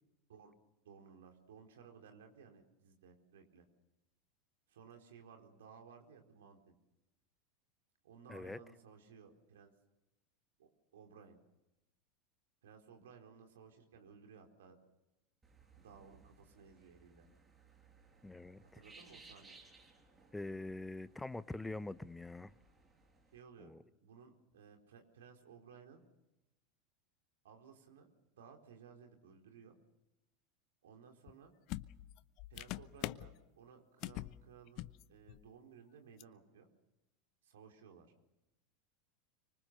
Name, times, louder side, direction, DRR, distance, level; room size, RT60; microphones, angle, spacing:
voice 1, 0.8-3.6 4.7-6.7 8.0-9.7 10.6-11.4 12.6-14.8 15.7-17.3 18.6-19.6 23.3-23.7 24.0-26.0 27.4-28.1 28.4-29.8 30.8-31.5 32.5-36.7 37.4-38.1, right 6 dB, 70° right, 4.4 m, -58 dB
sound 1, 15.4-23.4, right 3 dB, 20° right, 7.9 m, -63 dB
voice 2, 18.2-18.8 20.3-22.6 23.6-23.8, left 2 dB, 10° left, 1.0 m, -44 dB
sound 2, 31.3-31.4 31.7-33.3 34.0-34.4 34.7-35.0 35.3-35.5 36.2-36.3, left 17 dB, 50° left, 0.8 m, -43 dB
25.5 x 24.0 x 6.8 m
figure-of-eight pair, 85°, 0 cm